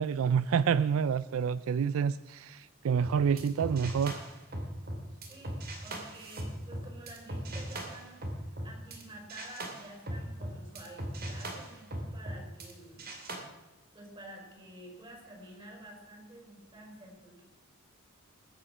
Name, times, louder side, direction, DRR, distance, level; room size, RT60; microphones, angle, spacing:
voice 1, 0.0-4.1, right 7 dB, 70° right, 17 dB, 0.4 m, -28 dB
sound 1, 3.0-9.0 9.3-12.7 13.0-13.4, right 1 dB, 45° right, 2.4 m, -39 dB
voice 2, 5.3-8.2 8.5-13.1 13.9-17.4, right 1 dB, 25° right, 0 dB, 5.1 m, -50 dB
21.0 x 7.8 x 6.1 m, 1.1 s
head